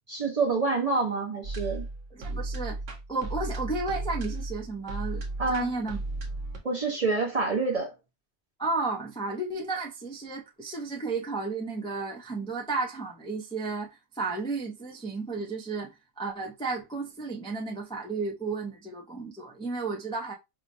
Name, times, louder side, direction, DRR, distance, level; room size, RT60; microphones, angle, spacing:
voice 1, 0.1-1.9 5.4-5.7 6.6-7.9, right 3 dB, 40° right, 0.7 m, -27 dB
sound 1, 1.4-6.6, right 2 dB, 90° right, 1.2 m, -35 dB
voice 2, 2.1-2.8 3.1-6.0 8.6-20.3, right 3 dB, 5° left, 0.4 m, -33 dB
4.7 x 2.1 x 2.6 m
omnidirectional pair, 1.2 m